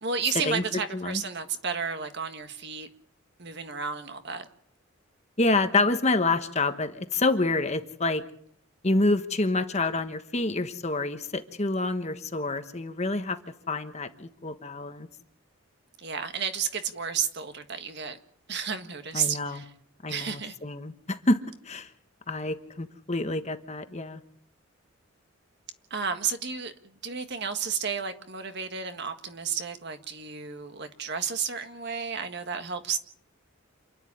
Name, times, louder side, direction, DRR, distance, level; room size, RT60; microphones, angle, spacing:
voice 1, 0.0-2.9 3.4-4.5 16.0-18.2 18.5-19.7 20.1-20.6 25.9-26.7 27.0-33.0, right 6 dB, 50° right, 1.7 m, -32 dB
voice 2, 5.4-8.2 8.8-13.4 13.7-15.1 19.1-19.6 20.0-21.9 22.3-24.2, left 2 dB, 30° left, 1.3 m, -27 dB
28.5 x 10.0 x 9.9 m
head